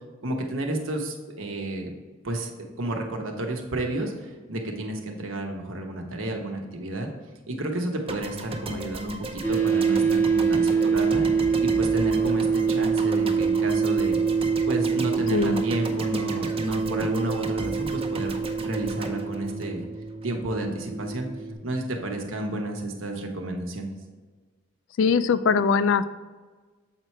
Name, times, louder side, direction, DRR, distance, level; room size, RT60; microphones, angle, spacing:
voice 1, 0.2-1.9 2.2-2.5 2.8-7.1 7.5-14.2 14.7-19.9 20.2-21.3 21.6-23.9, right 1 dB, 85° right, 2 dB, 1.1 m, -31 dB
sound 1, 8.1-20.3, right 2 dB, 30° right, 0.6 m, -36 dB
sound 2, 9.4-21.5, right 5 dB, 10° left, 0.9 m, -25 dB
voice 2, 15.3-15.6 25.0-26.0, left 5 dB, 65° left, 14 dB, 0.3 m, -21 dB
7.5 x 4.5 x 4.5 m, 1.4 s
head